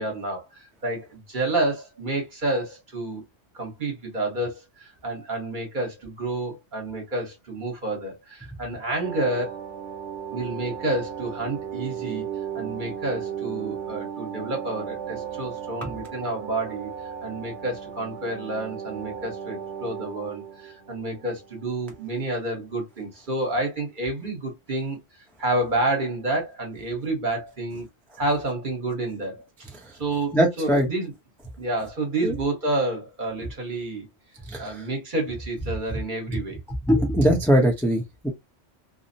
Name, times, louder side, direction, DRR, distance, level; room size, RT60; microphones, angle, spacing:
voice 1, 0.0-3.2 3.5-9.6 10.3-12.3 12.5-16.9 17.2-27.9 28.2-29.4 30.0-31.1 31.6-34.1 34.6-36.6, right 2 dB, 45° right, 1.2 m, -29 dB
sound 1, 9.0-22.1 22.4-22.5, right 8 dB, 75° right, 1.0 m, -36 dB
voice 2, 30.3-30.9 32.2-32.4 34.5-34.9 36.9-38.3, equal, 5° left, 0.4 m, -21 dB
2.7 x 2.0 x 2.6 m
omnidirectional pair, 1.2 m